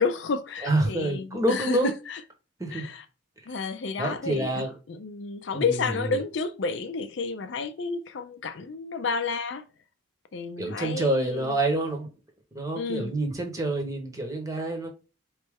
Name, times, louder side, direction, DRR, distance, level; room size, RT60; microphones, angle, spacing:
voice 1, 0.0-2.2 2.7-3.0 3.5-9.6 10.3-11.6 12.8-13.2, left 4 dB, 65° left, 0.4 m, -31 dB
voice 2, 0.6-1.9 2.6-2.9 4.0-4.7 5.5-6.2 10.6-12.1 12.5-14.9, right 2 dB, 15° right, 1.0 m, -27 dB
4.3 x 3.2 x 3.5 m
head